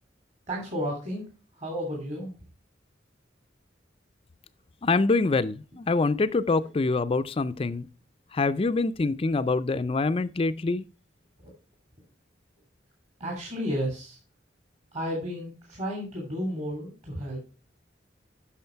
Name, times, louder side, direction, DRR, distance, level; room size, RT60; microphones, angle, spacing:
voice 1, 0.5-1.3 1.5-2.3 11.4-11.6 13.2-14.2 14.9-17.4, equal, 40° right, 3.0 m, -32 dB
voice 2, 4.8-7.9 8.3-10.8, left 3 dB, 30° left, 0.4 m, -25 dB
9.4 x 6.3 x 4.5 m
head